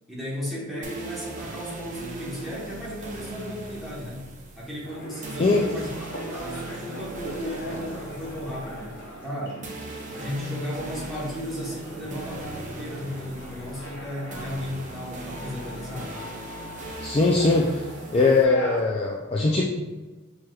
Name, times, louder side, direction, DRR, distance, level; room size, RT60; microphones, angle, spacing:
voice 1, 0.1-4.3 4.5-9.7 10.1-16.1, equal, ahead, -7 dB, 1.1 m, -35 dB
sound 1, 0.8-18.4, right 2 dB, 35° right, 0.6 m, -40 dB
sound 2, 4.8-18.8, equal, 60° left, 0.8 m, -40 dB
voice 2, 17.0-17.9 18.1-19.6, left 3 dB, 30° left, -3 dB, 0.3 m, -21 dB
5.9 x 3.2 x 2.3 m, 1.2 s
head